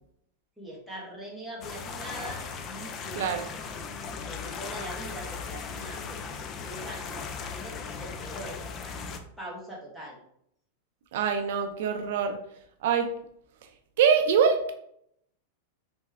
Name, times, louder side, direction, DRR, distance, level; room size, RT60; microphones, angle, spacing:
voice 1, 0.6-3.3 4.1-6.2 6.6-10.2, right 1 dB, ahead, -5 dB, 1.2 m, -42 dB
sound 1, 1.6-9.2, left 5 dB, 30° left, 0.4 m, -37 dB
voice 2, 11.1-12.4 12.8-13.1 14.0-14.7, right 6 dB, 65° right, 7 dB, 0.4 m, -24 dB
3.4 x 3.1 x 3.4 m, 0.71 s
supercardioid pair, 150°, 0 cm